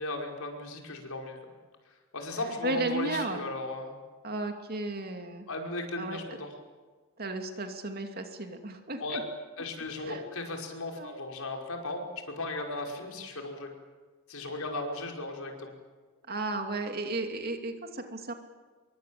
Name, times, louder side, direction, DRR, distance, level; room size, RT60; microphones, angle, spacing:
voice 1, 0.0-1.4 2.1-4.0 5.5-6.5 9.0-9.2 9.6-13.7 14.3-15.7, left 2 dB, 75° left, 2 dB, 5.4 m, -36 dB
voice 2, 2.6-3.5 4.2-5.5 6.0-6.2 7.2-9.2 10.0-10.2 10.9-11.1 16.3-18.3, right 2 dB, 45° right, 5 dB, 2.8 m, -34 dB
27.5 x 23.5 x 8.7 m, 1.4 s
head